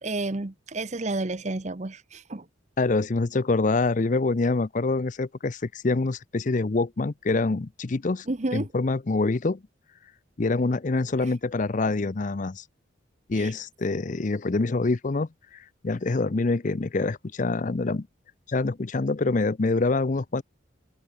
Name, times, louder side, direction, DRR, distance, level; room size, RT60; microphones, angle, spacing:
voice 1, 0.0-2.4 8.3-8.7 13.3-13.5, right 2 dB, 35° right, 0.9 m, -31 dB
voice 2, 2.8-8.3 8.5-9.6 10.4-12.6 13.3-18.1 18.5-20.4, left 3 dB, 40° left, 0.5 m, -25 dB
open air
head